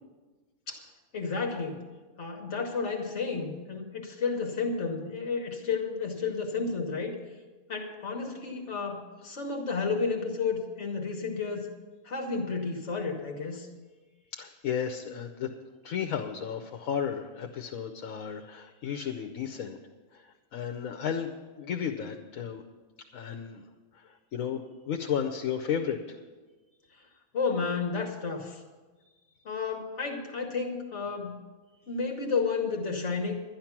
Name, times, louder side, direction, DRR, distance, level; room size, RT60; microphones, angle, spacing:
voice 1, 1.1-1.8 2.2-7.1 7.7-11.7 12.0-13.7 27.3-28.6 29.4-31.4 31.9-33.4, left 4 dB, 60° left, 2 dB, 1.4 m, -31 dB
voice 2, 14.3-15.5 15.8-19.8 20.1-20.2 20.5-22.6 23.1-23.6 24.3-24.6 24.9-26.2, left 8 dB, 80° left, 4 dB, 1.1 m, -33 dB
12.0 x 10.5 x 5.9 m, 1.3 s
omnidirectional pair, 1.4 m